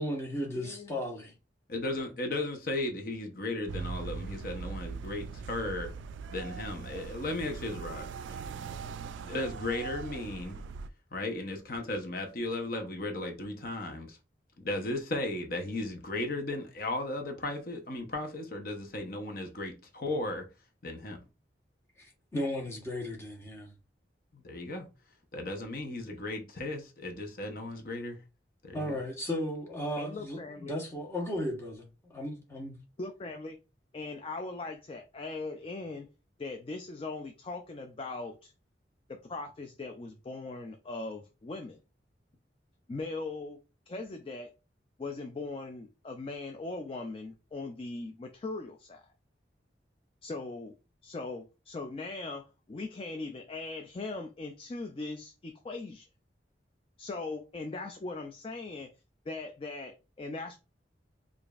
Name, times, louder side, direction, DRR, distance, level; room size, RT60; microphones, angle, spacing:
voice 1, 0.0-1.3 22.0-23.7 28.7-32.7, left 1 dB, 15° left, 1.1 m, -35 dB
voice 2, 0.5-1.0 30.0-30.7 33.0-33.6 33.9-36.1 36.4-38.5 39.1-41.8 42.9-43.6 43.9-44.5 45.0-49.0 50.2-50.7 51.0-56.1 57.0-58.9 59.3-60.6, left 3 dB, 30° left, 0.3 m, -40 dB
voice 3, 1.7-5.9 6.3-8.4 9.2-10.6 11.1-14.2 14.6-20.4 20.8-21.2 24.3-24.9 25.3-28.2 28.6-29.0, left 2 dB, 50° left, 0.8 m, -35 dB
sound 1, 3.7-10.9, right 5 dB, 85° right, 0.3 m, -41 dB
4.9 x 2.5 x 2.4 m
head